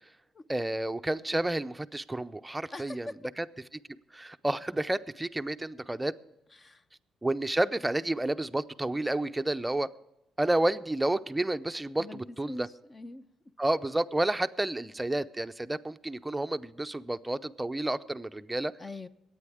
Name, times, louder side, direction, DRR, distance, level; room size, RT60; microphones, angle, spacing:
voice 1, 0.5-3.5 4.1-6.1 7.2-9.9 10.4-12.7 13.6-18.7, right 1 dB, 10° right, 0.6 m, -30 dB
voice 2, 2.7-3.2 6.6-6.8 12.0-12.2 12.5-13.3 18.8-19.1, left 2 dB, 30° left, 0.8 m, -42 dB
23.0 x 9.2 x 3.6 m
cardioid pair, 90°, 0 cm